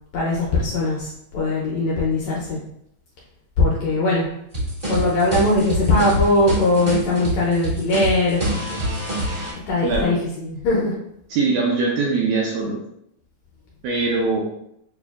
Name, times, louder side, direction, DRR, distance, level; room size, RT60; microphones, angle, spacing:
voice 1, 0.1-2.6 3.6-4.3 4.9-8.4 9.7-10.2 10.4-10.9, left 2 dB, 75° left, -4 dB, 1.6 m, -20 dB
sound 1, 4.5-9.5, right 1 dB, 55° right, 0.6 m, -25 dB
voice 2, 9.8-10.2 11.3-12.8 13.8-14.4, right 4 dB, 80° right, -2 dB, 1.7 m, -21 dB
6.8 x 2.3 x 2.3 m, 0.76 s
omnidirectional pair, 3.8 m